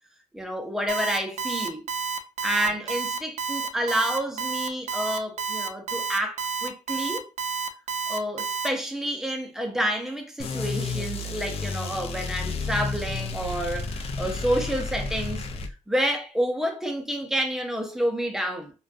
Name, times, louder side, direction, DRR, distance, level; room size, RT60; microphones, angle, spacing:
voice 1, 0.3-1.8 2.4-7.3 8.1-15.5 15.9-18.7, equal, 5° right, 0.5 m, -29 dB
Alarm, 0.9-8.7, right 6 dB, 65° right, 0.4 m, -29 dB
sound 1, 10.4-15.7, left 3 dB, 50° left, 0.4 m, -31 dB
2.5 x 2.2 x 2.4 m
wide cardioid pair, 150°, 12 cm